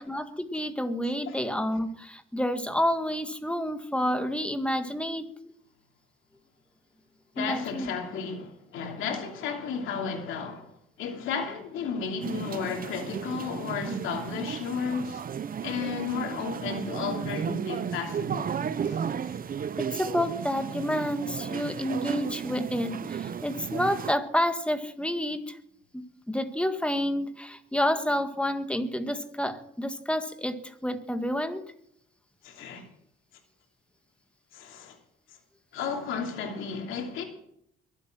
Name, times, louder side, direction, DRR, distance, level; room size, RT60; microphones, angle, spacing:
voice 1, 0.0-5.3 7.4-7.9 19.8-25.6 25.9-30.6 30.8-31.6, left 1 dB, 5° left, 1.8 m, -29 dB
voice 2, 7.3-15.2 15.6-19.0 32.4-32.9 34.5-35.0 35.7-37.2, left 6 dB, 90° left, 3.0 m, -33 dB
sound 1, 12.2-24.1, right 7 dB, 45° right, 0.8 m, -34 dB
22.5 x 8.2 x 6.2 m
cardioid pair, 90°, 20 cm